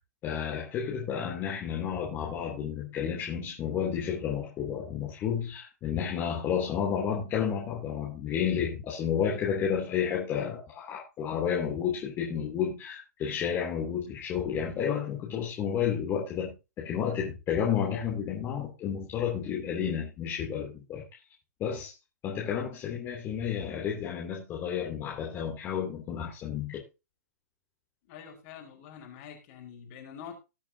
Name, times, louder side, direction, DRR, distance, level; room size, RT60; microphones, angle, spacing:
voice 1, 0.2-21.0 21.6-21.9 22.2-26.8, left 8 dB, 25° left, -2 dB, 3.0 m, -31 dB
voice 2, 28.0-30.4, left 8 dB, 40° left, 3 dB, 5.0 m, -46 dB
19.5 x 6.7 x 2.8 m, 0.28 s
hypercardioid pair, 135°, 9 cm